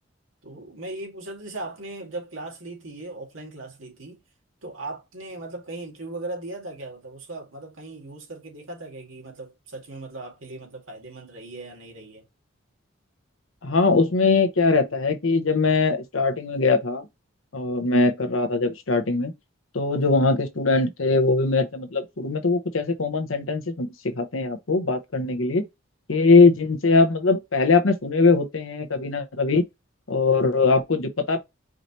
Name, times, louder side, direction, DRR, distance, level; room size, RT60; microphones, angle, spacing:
voice 1, 0.4-4.2 4.6-12.2 26.3-26.5, right 2 dB, 80° right, 2.0 m, -38 dB
voice 2, 13.6-17.1 17.5-19.3 19.7-25.6 26.1-29.7 30.1-31.4, left 3 dB, 85° left, 0.9 m, -21 dB
4.9 x 2.7 x 3.0 m
head